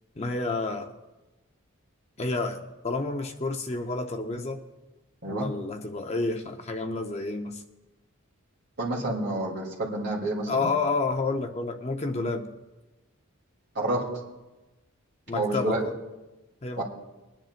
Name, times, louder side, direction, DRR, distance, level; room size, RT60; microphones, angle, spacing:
voice 1, 0.2-0.9 2.2-4.6 5.3-7.6 10.5-12.5 15.3-16.0 16.6-16.8, left 3 dB, 30° left, 5 dB, 0.6 m, -30 dB
voice 2, 8.8-10.7 13.7-14.0 15.3-15.8 16.8-16.9, right 2 dB, 50° right, -3 dB, 3.1 m, -29 dB
22.0 x 10.5 x 2.5 m, 1.1 s
head